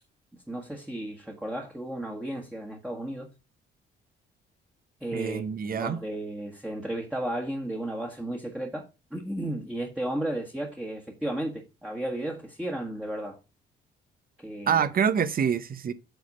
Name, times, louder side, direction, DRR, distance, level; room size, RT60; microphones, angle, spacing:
voice 1, 0.5-3.3 5.0-5.4 5.7-8.8 9.1-13.4 14.4-14.9, right 1 dB, 5° right, 1.5 m, -34 dB
voice 2, 5.1-6.0 14.7-15.9, right 7 dB, 45° right, 0.9 m, -26 dB
8.0 x 4.2 x 5.4 m
cardioid pair, 90°, 20 cm